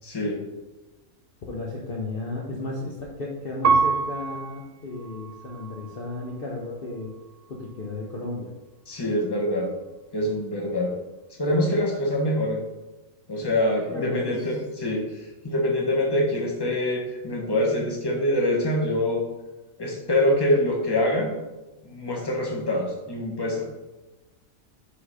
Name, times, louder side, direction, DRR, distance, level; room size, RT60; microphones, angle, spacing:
voice 1, 0.0-0.4 8.9-9.7 10.1-10.9 11.4-12.6 13.3-19.3 19.8-21.3 21.8-23.6, left 1 dB, 20° left, -1 dB, 1.2 m, -25 dB
voice 2, 1.5-7.1 7.5-8.5 13.9-14.4, left 2 dB, 45° left, -3 dB, 1.0 m, -33 dB
Piano, 3.6-6.4 7.0-7.7, right 5 dB, 65° right, 0.9 m, -27 dB
5.7 x 4.0 x 5.5 m, 1.1 s
omnidirectional pair, 1.5 m